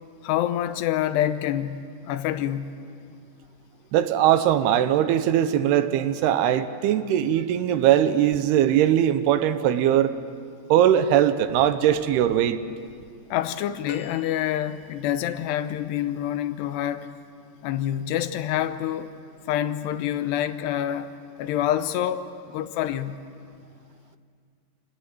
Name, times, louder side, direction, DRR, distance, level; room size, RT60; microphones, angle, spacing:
voice 1, 0.2-2.8 13.3-17.1 17.6-19.1 19.5-23.2, left 11 dB, 80° left, 2.9 m, -27 dB
voice 2, 3.9-10.1 10.7-12.6, right 11 dB, 80° right, 2.7 m, -20 dB
sound 1, 13.9-15.3 17.7-17.9 19.2-19.3, left 4 dB, 60° left, 2.3 m, -44 dB
27.5 x 18.5 x 7.8 m
omnidirectional pair, 4.8 m